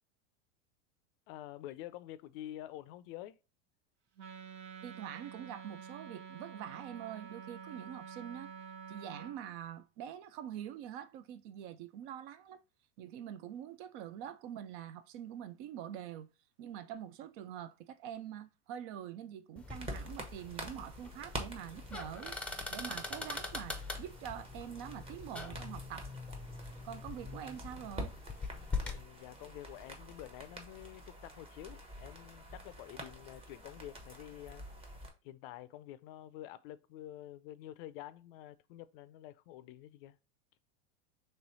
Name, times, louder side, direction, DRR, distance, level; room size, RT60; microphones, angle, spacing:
voice 1, 1.3-3.4 28.8-34.9 35.2-40.2, left 13 dB, 55° left, 0.4 m, -48 dB
Wind instrument woodwind instrument, 4.2-9.4, right 7 dB, 75° right, 0.9 m, -48 dB
voice 2, 4.8-8.5 8.9-12.6 13.0-16.3 16.6-22.4 22.7-26.1 26.8-28.1, right 10 dB, 55° right, 0.5 m, -45 dB
sound 1, 19.6-29.0, left 3 dB, 5° left, 0.5 m, -43 dB
sound 2, 19.7-35.1, right 1 dB, 15° right, 0.9 m, -48 dB
3.3 x 3.1 x 4.0 m
supercardioid pair, 120°, 34 cm